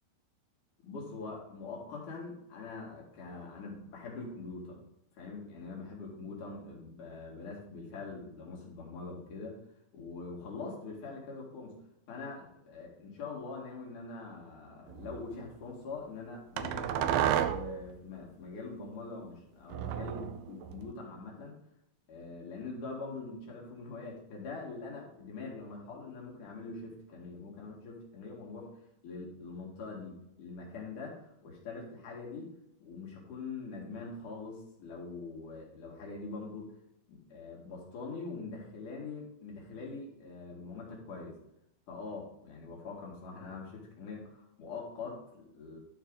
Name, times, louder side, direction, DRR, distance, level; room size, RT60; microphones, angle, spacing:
voice 1, 0.8-4.8 5.2-9.6 9.9-11.7 12.1-21.5 22.1-28.7 29.0-32.5 32.8-36.7 37.1-41.4 41.9-45.8, left 4 dB, 75° left, -2 dB, 3.7 m, -43 dB
sound 1, 14.9-15.2 16.6-17.8 19.7-20.9, right 10 dB, 80° right, 1.6 m, -31 dB
12.0 x 4.7 x 3.8 m, 0.81 s
omnidirectional pair, 3.7 m